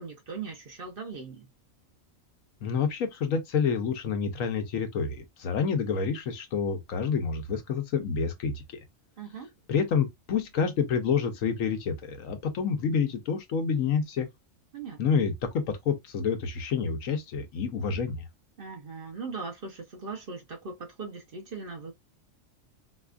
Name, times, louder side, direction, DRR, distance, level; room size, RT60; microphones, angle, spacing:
voice 1, 0.0-1.5 9.2-9.5 14.7-15.0 18.6-21.9, right 4 dB, 50° right, 0.9 m, -39 dB
voice 2, 2.6-8.6 9.7-14.3 15.0-18.2, left 6 dB, 80° left, 1.1 m, -28 dB
4.1 x 2.4 x 2.3 m
omnidirectional pair, 1.4 m